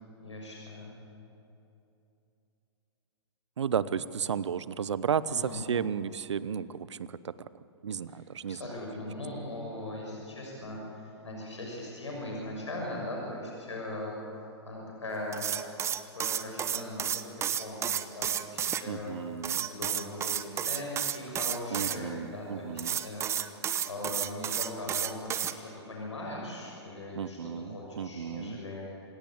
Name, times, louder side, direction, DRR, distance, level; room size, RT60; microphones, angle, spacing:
voice 1, 0.2-1.0 5.3-5.6 8.1-8.2 8.5-15.5 16.1-23.3 23.8-28.8, left 1 dB, 90° left, -2 dB, 6.5 m, -40 dB
voice 2, 3.6-7.3 7.8-8.6 18.9-19.7 21.7-23.0 27.1-28.6, right 7 dB, 75° right, 17 dB, 0.9 m, -33 dB
sound 1, 15.3-18.8 19.4-22.0 22.8-25.5, right 9 dB, 20° right, 0.9 m, -31 dB
27.0 x 17.5 x 8.8 m, 2.9 s
hypercardioid pair, 125°, 15 cm